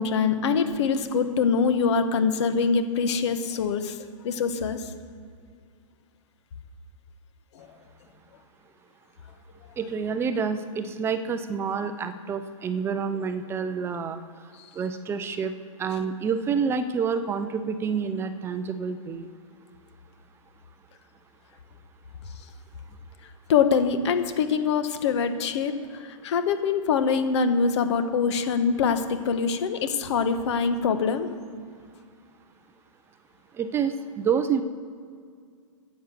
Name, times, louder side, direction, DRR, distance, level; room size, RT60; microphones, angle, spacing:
voice 1, 0.0-4.0 4.2-4.9 7.5-7.7 23.5-25.7 26.0-31.3, left 5 dB, 55° left, 9 dB, 1.3 m, -24 dB
voice 2, 9.8-15.5 15.8-19.3 33.5-34.6, right 6 dB, 15° right, 10 dB, 0.5 m, -28 dB
10.0 x 8.3 x 6.7 m, 2.1 s
hypercardioid pair, 140°, 17 cm